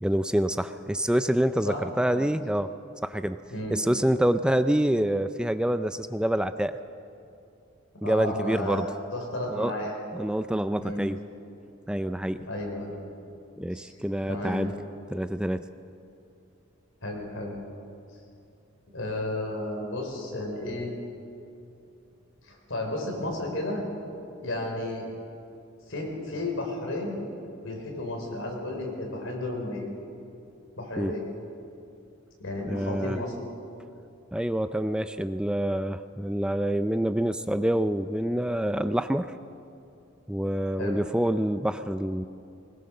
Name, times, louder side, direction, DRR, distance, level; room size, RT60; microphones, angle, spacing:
voice 1, 0.0-2.7 3.0-3.4 3.7-6.8 8.0-8.9 9.5-9.7 10.1-11.2 11.9-12.4 13.6-14.7 15.1-15.6 31.0-31.1 32.7-33.2 34.3-39.3 40.3-42.3, right 1 dB, 5° right, 10 dB, 0.4 m, -26 dB
voice 2, 3.5-3.8 8.0-10.0 10.8-11.0 12.5-12.9 13.7-13.9 14.3-14.7 17.0-17.6 18.9-20.9 22.4-23.8 24.4-25.0 25.9-27.2 27.6-29.9 30.8-31.3 32.4-33.3 40.8-41.0, left 1 dB, 75° left, 0 dB, 5.0 m, -33 dB
21.5 x 20.0 x 6.7 m, 2.7 s
head